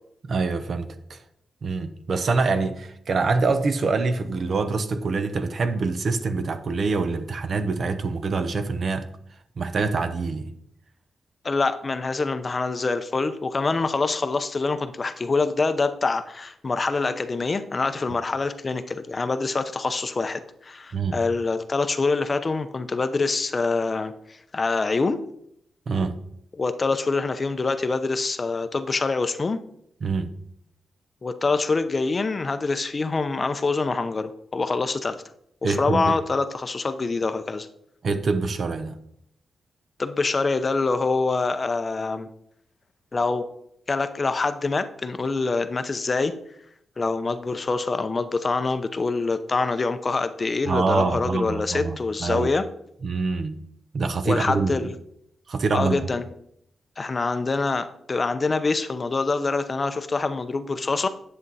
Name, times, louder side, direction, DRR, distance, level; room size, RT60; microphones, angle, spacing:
voice 1, 0.3-1.2 1.6-9.1 9.6-10.5 20.9-21.2 25.9-26.2 30.0-30.3 35.6-36.1 38.0-38.9 50.6-52.5 53.0-53.6 53.9-54.9 55.5-56.0, right 4 dB, 50° right, 0.8 m, -25 dB
voice 2, 11.4-25.2 26.6-29.6 31.2-35.2 35.6-37.7 40.0-42.3 43.1-43.5 43.9-46.3 47.0-52.7 54.2-54.9 55.7-56.2 57.0-61.1, left 3 dB, 30° left, 0.6 m, -25 dB
10.0 x 7.6 x 4.1 m
wide cardioid pair, 135°, 0 cm